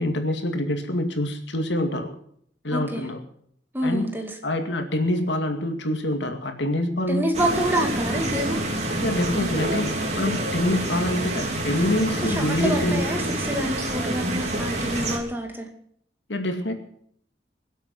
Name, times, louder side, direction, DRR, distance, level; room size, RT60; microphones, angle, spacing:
voice 1, 0.0-2.1 2.6-3.2 3.8-4.1 4.4-7.3 9.0-13.0 16.3-16.7, left 1 dB, 80° left, 5 dB, 2.3 m, -26 dB
voice 2, 2.7-3.1 3.7-4.4 7.1-8.7 12.2-15.7, right 1 dB, 10° right, 3 dB, 2.2 m, -27 dB
sound 1, 7.3-15.2, right 1 dB, 35° right, 3.1 m, -27 dB
23.5 x 8.1 x 6.1 m, 0.66 s
head